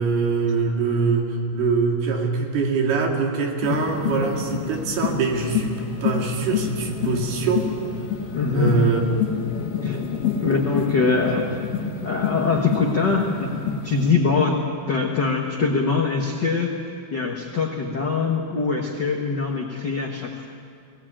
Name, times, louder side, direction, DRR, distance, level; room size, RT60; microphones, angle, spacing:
voice 1, 0.0-7.7 8.5-9.2 11.2-11.4, right 4 dB, 80° right, 1 dB, 4.3 m, -23 dB
sound 1, 3.6-14.1, left 7 dB, 70° left, 3.5 m, -28 dB
voice 2, 8.3-8.8 9.8-10.0 10.4-11.6 12.0-16.8 17.1-20.5, left 4 dB, 90° left, 0 dB, 0.9 m, -23 dB
21.0 x 18.0 x 8.8 m, 2.3 s
omnidirectional pair, 4.5 m